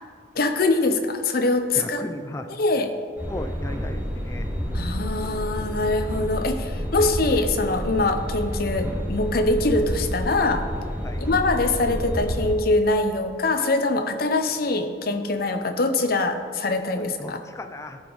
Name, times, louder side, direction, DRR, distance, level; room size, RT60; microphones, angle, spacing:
voice 1, 0.4-2.0 2.5-2.9 4.7-10.7 11.2-17.4, left 2 dB, 50° left, 7 dB, 0.6 m, -23 dB
voice 2, 1.8-2.5 3.3-4.0 4.3-4.5 11.0-11.2 17.2-18.0, left 1 dB, 15° left, 7 dB, 0.3 m, -35 dB
sound 1, 3.2-12.5, equal, 10° right, 1.3 m, -29 dB
14.0 x 4.8 x 3.9 m, 2.1 s
head